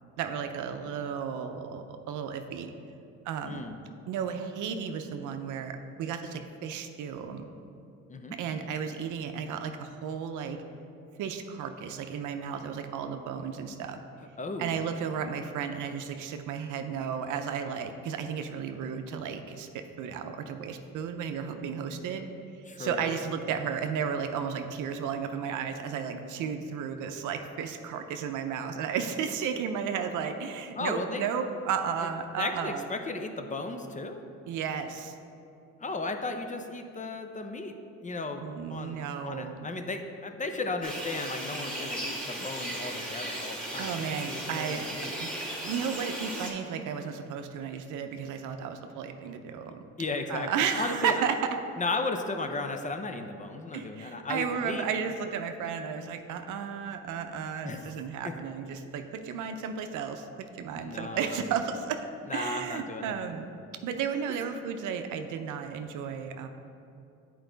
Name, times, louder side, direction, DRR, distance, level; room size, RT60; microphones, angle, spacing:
voice 1, 0.2-2.7 3.3-3.6 4.1-7.5 8.4-10.6 11.2-14.0 14.6-22.3 22.8-32.8 34.5-35.1 38.4-39.7 43.8-44.8 45.2-45.3 45.6-49.8 50.3-51.4 53.7-60.3 60.5-63.5 63.8-66.5, right 7 dB, 85° right, 7 dB, 0.6 m, -33 dB
voice 2, 3.4-3.8 8.1-8.4 14.4-14.8 22.7-23.2 30.8-31.3 32.4-34.2 35.8-37.8 38.0-45.2 50.0-51.2 51.8-54.8 57.6-58.3 60.8-61.4 62.3-63.2, left 3 dB, 25° left, 6 dB, 0.6 m, -35 dB
sound 1, 40.8-46.5, right 1 dB, 5° left, 1.7 m, -36 dB
8.2 x 4.6 x 3.9 m, 2.6 s
cardioid pair, 90°, 30 cm